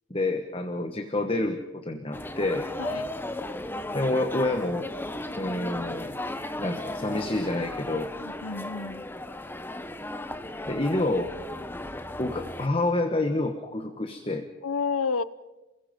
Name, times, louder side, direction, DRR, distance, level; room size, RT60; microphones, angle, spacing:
voice 1, 0.1-2.7 3.9-4.9 5.4-6.2 6.6-8.1 10.7-11.3 12.2-14.4, left 2 dB, 25° left, 6 dB, 1.3 m, -28 dB
sound 1, 2.1-12.7, left 1 dB, 10° left, 0.8 m, -35 dB
voice 2, 2.8-3.1 8.2-9.0 14.6-15.2, left 5 dB, 85° left, 16 dB, 0.8 m, -30 dB
29.0 x 21.0 x 5.3 m, 1.1 s
head